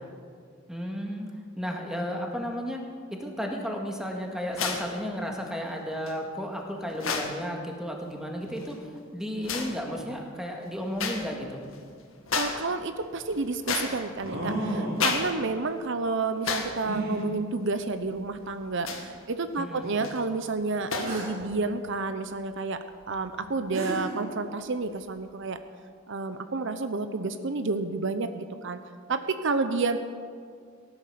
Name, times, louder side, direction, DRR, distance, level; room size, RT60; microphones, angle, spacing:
voice 1, 0.7-1.3 1.6-2.8 3.2-11.6 19.6-20.0, equal, 5° right, 1 dB, 1.9 m, -33 dB
sound 1, 4.5-4.9 6.1-6.2 6.9-7.4 8.5-8.8 9.4-9.8 11.0-11.3 11.6-11.8 12.3-12.7 13.0-14.3 14.9-15.4 15.7-15.8 16.4-16.8 17.2-17.3 18.8-19.2 19.8-20.2 20.9-21.2, left 5 dB, 90° left, 1.8 m, -31 dB
voice 2, 12.4-22.8 23.1-25.6 26.1-28.8 29.1-30.0, right 3 dB, 65° right, 10 dB, 0.7 m, -30 dB
sound 2, 12.7-12.8 14.2-15.1 16.8-17.2 18.2-18.3 18.9-19.0 21.0-21.4 23.4-23.5 23.7-24.2, right 1 dB, 90° right, 3.8 m, -32 dB
17.5 x 11.5 x 6.8 m, 2.1 s
head